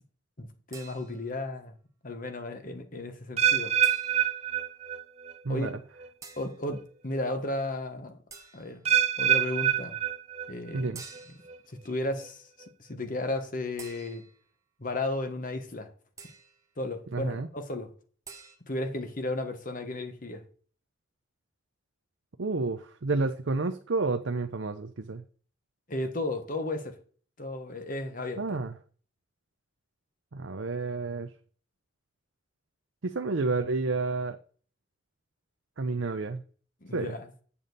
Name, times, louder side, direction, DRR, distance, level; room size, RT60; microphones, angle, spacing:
voice 1, 0.4-1.7 2.0-3.7 5.5-5.7 6.4-8.2 8.5-8.8 9.2-10.0 10.5-10.9 11.7-12.5 12.8-14.2 14.8-15.9 16.8-17.9 18.7-20.4 25.9-27.0 27.4-28.6 36.8-37.3, left 2 dB, 45° left, 1.3 m, -34 dB
sound 1, 0.7-1.4 3.8-4.5 6.2-6.6 8.3-8.9 11.0-11.6 13.8-14.5 16.2-16.7 18.3-18.6, right 5 dB, 15° right, 1.0 m, -48 dB
sound 2, 3.4-5.4 5.6-6.1 6.7-6.8 8.8-10.8 11.1-11.6 12.2-12.3, right 10 dB, 35° right, 0.6 m, -26 dB
voice 2, 17.1-17.5 22.4-25.2 28.4-28.7 30.3-31.3 33.0-34.4 35.8-36.4 36.9-37.1, right 3 dB, 75° right, 0.6 m, -30 dB
8.8 x 7.1 x 4.0 m
head